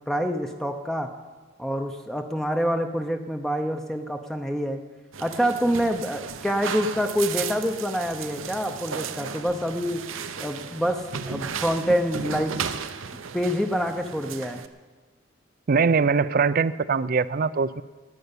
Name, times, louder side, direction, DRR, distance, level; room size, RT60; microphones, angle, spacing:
voice 1, 0.1-1.2 1.6-4.8 5.2-10.0 10.4-12.6 13.3-14.6, equal, ahead, 5 dB, 0.7 m, -26 dB
sound 1, 5.1-14.7, right 6 dB, 80° right, 0.8 m, -35 dB
voice 2, 15.7-17.8, right 5 dB, 45° right, 16 dB, 0.5 m, -22 dB
12.0 x 9.2 x 9.7 m, 1.3 s
head